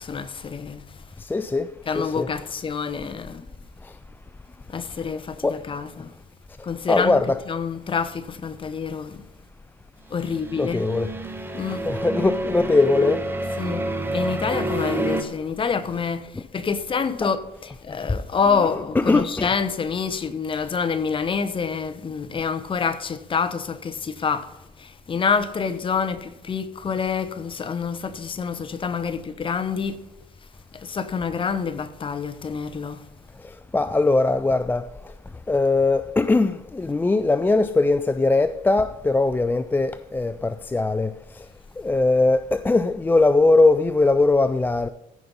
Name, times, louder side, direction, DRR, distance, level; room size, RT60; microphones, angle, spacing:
voice 1, 0.0-1.1 1.9-3.4 4.7-6.1 6.6-9.3 10.1-10.9 11.5-11.9 13.6-30.0 30.7-33.1, left 5 dB, 30° left, 0.9 m, -27 dB
voice 2, 1.2-1.7 2.0-2.3 5.4-5.6 6.9-7.4 10.6-11.1 11.8-13.2 17.2-17.3 19.0-19.5 33.7-34.9 35.5-41.1 41.8-44.9, left 3 dB, 10° left, 0.3 m, -20 dB
sound 1, 10.1-15.2, right 2 dB, 15° right, 1.1 m, -28 dB
15.0 x 5.2 x 5.5 m
cardioid pair, 110°, 17 cm